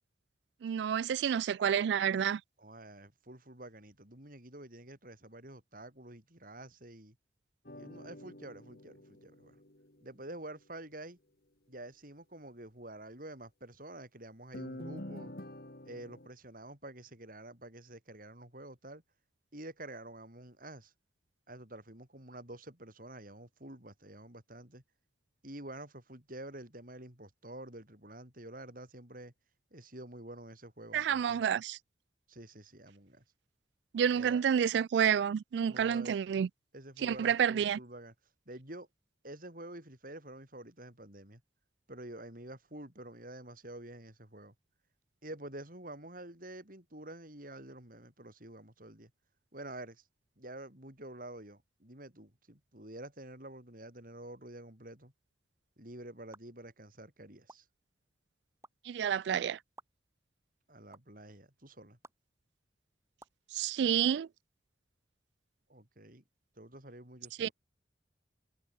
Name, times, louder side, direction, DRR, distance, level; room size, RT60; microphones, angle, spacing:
voice 1, 0.6-2.4 30.9-31.8 33.9-36.5 37.0-37.8 58.9-59.6 63.5-64.3 67.4-67.5, right 8 dB, 70° right, 0.3 m, -29 dB
voice 2, 2.6-7.2 7.7-9.6 10.0-11.2 11.7-15.3 15.8-19.0 19.5-20.9 21.5-24.8 25.4-29.3 29.7-31.4 32.3-33.2 34.1-34.4 35.7-36.2 36.7-38.1 38.5-38.9 39.2-41.4 41.9-44.5 45.2-49.1 49.5-50.0 50.4-55.1 55.8-57.6 60.7-62.0 65.7-66.2 66.6-67.5, right 1 dB, 50° right, 6.2 m, -48 dB
sound 1, 7.7-10.2 14.5-16.3, left 1 dB, 60° left, 3.2 m, -47 dB
sound 2, 56.3-56.4 57.5-57.6 58.6-58.7 59.8-59.9 60.9-61.0 62.0-62.1 63.2-63.4, right 2 dB, 15° right, 6.6 m, -52 dB
head